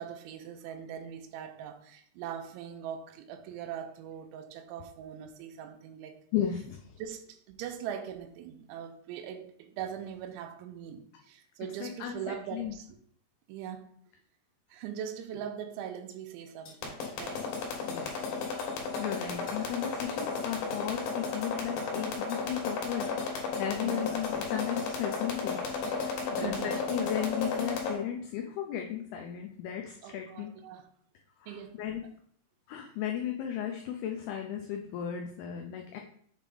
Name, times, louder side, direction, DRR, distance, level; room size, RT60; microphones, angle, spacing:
voice 1, 0.0-6.2 7.0-13.0 13.5-13.9 14.7-17.5 23.8-24.1 26.3-26.8 30.0-30.9 31.5-31.8, right 9 dB, 90° right, 3.1 m, -41 dB
voice 2, 6.3-6.8 11.8-12.7 17.9-18.1 19.0-25.6 25.9-26.5 26.9-30.5 31.4-32.0 32.7-36.0, left 9 dB, 90° left, 2.2 m, -35 dB
sound 1, 16.7-27.9, left 4 dB, 60° left, 2.9 m, -33 dB
7.2 x 3.3 x 5.2 m
omnidirectional pair, 5.2 m